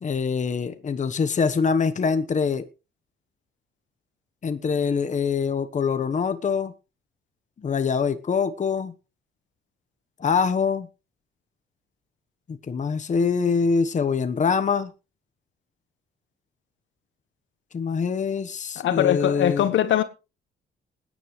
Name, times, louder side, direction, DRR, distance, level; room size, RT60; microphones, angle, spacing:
voice 1, 0.0-2.6 4.4-6.7 7.6-8.9 10.2-10.9 12.5-14.9 17.7-19.7, left 5 dB, 40° left, 1.2 m, -24 dB
voice 2, 18.8-20.0, left 11 dB, 70° left, 1.5 m, -21 dB
20.0 x 9.8 x 3.2 m
cardioid pair, 90°, 20 cm